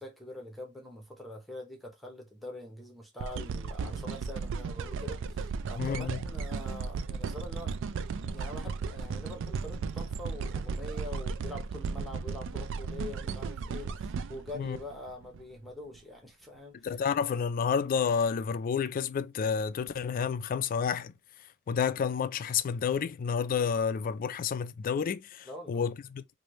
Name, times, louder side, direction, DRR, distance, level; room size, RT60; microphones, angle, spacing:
voice 1, 0.0-7.8 8.1-17.0 25.5-25.9, left 1 dB, ahead, 0.7 m, -44 dB
sound 1, 3.2-15.4 16.0-16.1, right 5 dB, 60° right, 0.3 m, -35 dB
voice 2, 5.8-6.2 14.6-14.8 16.8-21.1 21.7-26.4, left 6 dB, 40° left, 0.3 m, -30 dB
3.1 x 2.6 x 2.9 m
head